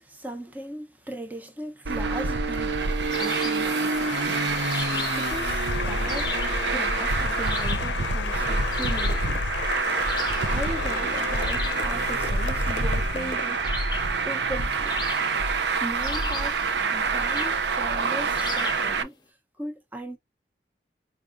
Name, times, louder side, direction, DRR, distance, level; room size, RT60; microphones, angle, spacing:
voice 1, 0.0-4.4 5.1-6.4 6.7-9.4 10.4-13.7 13.9-15.2 15.8-16.6 16.9-19.1 19.6-20.2, right 1 dB, 10° right, 0.7 m, -38 dB
Traffic noise roadway noise, 1.8-19.0, right 4 dB, 75° right, 0.6 m, -26 dB
Applause, 2.0-14.5, left 6 dB, 85° left, 0.5 m, -34 dB
sound 1, 3.1-3.7 4.7-5.3 6.1-6.6 7.5-8.0 8.7-9.3 10.0-10.6 11.4-11.9 13.6-14.2 14.9-15.5 16.0-16.6 17.3-17.6 18.3-18.9, left 5 dB, 25° left, 0.7 m, -36 dB
4.8 x 2.4 x 2.5 m
head